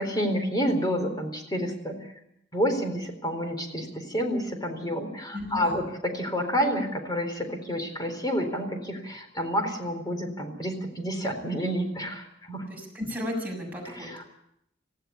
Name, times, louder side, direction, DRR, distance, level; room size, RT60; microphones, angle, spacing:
voice 1, 0.0-2.1 2.5-12.6 13.8-14.2, equal, 20° left, 5 dB, 4.2 m, -29 dB
voice 2, 5.3-5.8 12.7-14.1, left 1 dB, 10° right, -1 dB, 6.9 m, -34 dB
18.5 x 16.0 x 9.8 m, 0.78 s
head